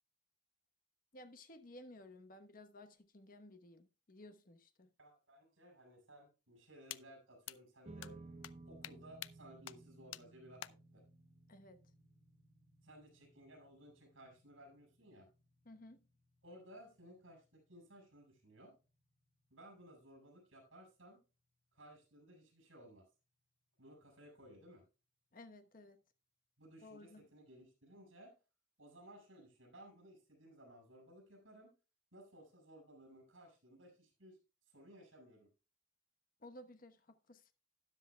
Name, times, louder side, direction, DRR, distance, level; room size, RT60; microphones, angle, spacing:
voice 1, 1.1-4.9 11.5-11.8 15.6-16.1 25.3-26.0 26.8-27.3 36.4-37.5, left 1 dB, 45° left, 1.1 m, -56 dB
voice 2, 5.0-8.2 8.7-11.0 12.8-15.3 16.4-18.8 19.5-21.2 21.7-23.1 23.8-24.8 26.6-28.3 28.8-31.7 32.1-35.5, equal, 75° right, 5.3 m, -59 dB
sound 1, 6.9-7.0 7.5-7.6 8.0-8.1 8.4-8.5 8.8-8.9 9.2-9.3 9.7-9.8 10.1-10.2 10.6-10.7, left 13 dB, 80° left, 0.4 m, -46 dB
sound 2, 7.8-20.4, right 2 dB, 35° right, 1.1 m, -60 dB
13.0 x 10.0 x 2.3 m
head